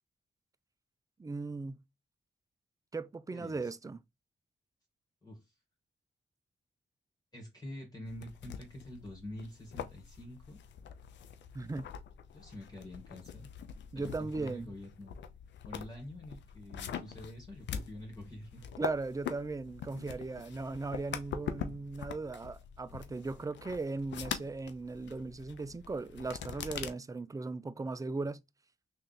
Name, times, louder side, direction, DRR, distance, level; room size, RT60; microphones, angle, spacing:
voice 1, 1.2-1.8 2.9-4.0 11.5-11.9 13.9-14.7 18.8-28.4, right 3 dB, 20° right, 0.4 m, -38 dB
voice 2, 3.3-3.7 5.2-5.5 7.3-10.6 12.3-13.5 13.9-15.2 15.6-18.7, left 1 dB, 20° left, 1.6 m, -47 dB
sound 1, 8.1-26.9, left 8 dB, 90° left, 0.5 m, -44 dB
3.4 x 2.5 x 4.0 m
cardioid pair, 65°, 18 cm